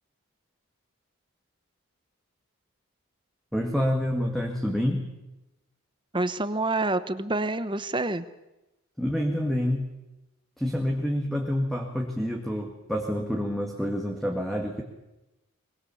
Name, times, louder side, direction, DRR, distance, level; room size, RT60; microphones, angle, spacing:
voice 1, 3.5-5.1 9.0-9.9 10.6-14.8, equal, ahead, 1 dB, 1.9 m, -28 dB
voice 2, 6.1-8.2, right 2 dB, 20° right, 12 dB, 1.0 m, -27 dB
22.5 x 22.0 x 7.2 m, 0.97 s
head